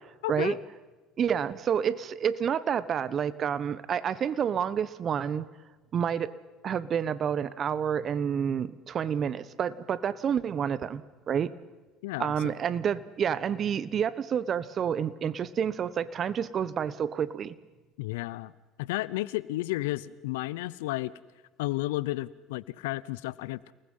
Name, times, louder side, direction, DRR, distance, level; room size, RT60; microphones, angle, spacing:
voice 1, 0.2-0.6 12.0-12.3 18.0-18.5 18.8-21.1 21.6-23.7, left 18 dB, 80° left, 20 dB, 0.7 m, -32 dB
voice 2, 1.2-5.4 5.9-6.3 6.6-11.0 11.3-11.5 12.2-17.5, right 8 dB, 45° right, 17 dB, 1.2 m, -29 dB
29.5 x 20.0 x 5.6 m, 1.2 s
hypercardioid pair, 75°, 0 cm